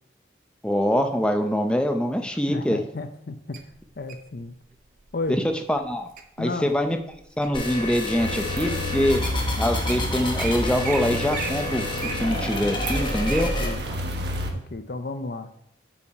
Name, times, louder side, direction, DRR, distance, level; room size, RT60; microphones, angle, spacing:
voice 1, 0.6-2.8 5.3-6.1 6.4-7.0 7.4-9.2 9.6-11.8 12.2-13.5, equal, 5° left, 5 dB, 0.6 m, -24 dB
voice 2, 2.5-3.6 4.0-4.6 5.1-5.4 6.4-6.7 13.3-13.8 14.5-15.5, left 2 dB, 55° left, 7 dB, 0.6 m, -33 dB
Wild animals, 3.5-4.3 5.0-5.3 5.8-6.2 6.7-7.7 8.3-8.4 9.0-9.1 9.2-9.4 9.7-10.0 10.4-10.5 10.8-11.0 11.3-13.5 13.9-14.0, right 7 dB, 45° right, 0.8 m, -35 dB
sound 1, 7.5-13.7, left 2 dB, 25° left, 1.1 m, -29 dB
sound 2, 8.2-14.5, equal, 65° right, 1.2 m, -31 dB
8.4 x 5.9 x 4.7 m, 0.76 s
head